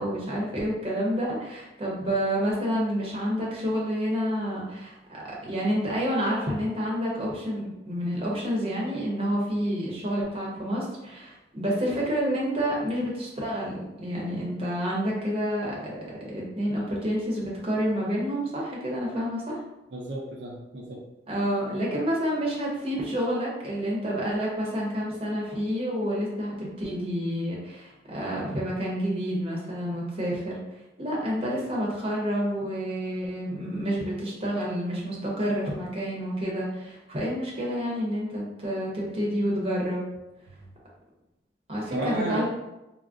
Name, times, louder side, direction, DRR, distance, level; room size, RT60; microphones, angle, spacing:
voice 1, 0.0-15.9 16.2-19.6 21.3-30.6 31.0-40.0 41.7-42.5, equal, 35° right, -4 dB, 0.7 m, -29 dB
voice 2, 19.9-21.0 41.9-42.5, right 1 dB, 75° right, -2 dB, 0.5 m, -32 dB
3.5 x 2.0 x 2.4 m, 0.95 s
head